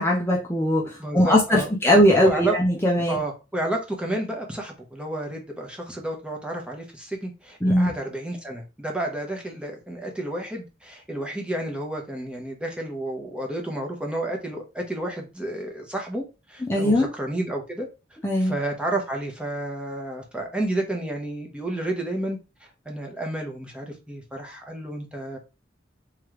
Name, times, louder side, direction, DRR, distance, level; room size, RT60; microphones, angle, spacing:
voice 1, 0.0-3.2 7.6-7.9 16.6-17.1 18.2-18.6, equal, 15° left, 0.7 m, -20 dB
voice 2, 1.0-1.7 2.2-2.5 3.1-16.2 16.5-17.9 18.4-22.4 22.8-25.4, right 1 dB, 5° right, 1.0 m, -31 dB
3.7 x 3.1 x 3.1 m
head